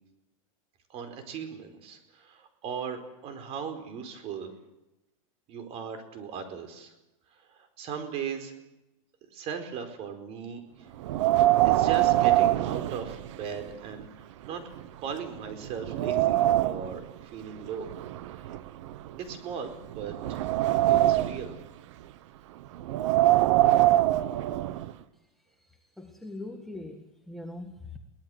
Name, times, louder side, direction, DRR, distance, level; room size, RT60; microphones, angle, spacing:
voice 1, 0.9-4.5 5.5-6.9 7.3-8.5 9.3-10.9 11.6-14.6 15.0-17.9 18.3-18.5 19.2-20.4 20.9-21.5, right 7 dB, 35° right, 8 dB, 4.6 m, -38 dB
Wind, 11.0-13.6 14.0-14.1 14.8-14.9 15.4-17.0 17.8-19.4 19.9-21.5 22.8-24.9, right 15 dB, 60° right, 1.3 m, -24 dB
voice 2, 26.0-28.0, left 2 dB, ahead, 3 dB, 1.8 m, -41 dB
23.0 x 18.5 x 8.0 m, 0.94 s
supercardioid pair, 145°, 17 cm